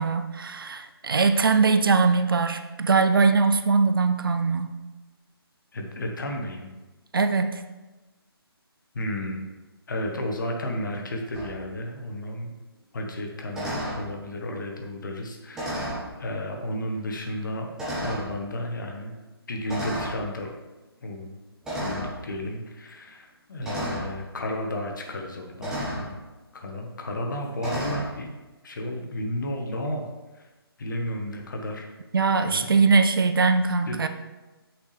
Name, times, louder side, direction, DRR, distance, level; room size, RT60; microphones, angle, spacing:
voice 1, 0.0-4.7 7.1-7.5 32.1-34.1, right 4 dB, 60° right, 8 dB, 0.6 m, -21 dB
voice 2, 5.7-6.7 8.9-9.5 9.9-12.5 12.9-17.7 18.0-19.1 19.5-20.5 21.0-21.4 21.8-26.1 26.5-28.3 28.6-30.0 30.3-30.5 30.8-31.9 32.4-32.7 33.9-34.0, left 1 dB, 50° left, 2 dB, 1.3 m, -33 dB
Office Chair Lever, 11.3-11.5 13.5-14.0 15.5-16.1 16.9-17.0 17.8-18.3 19.7-20.2 21.6-22.1 23.6-24.1 25.6-26.1 27.6-28.1, equal, 5° right, 1.3 m, -31 dB
8.0 x 6.1 x 3.3 m, 1.1 s
figure-of-eight pair, 145°, 13 cm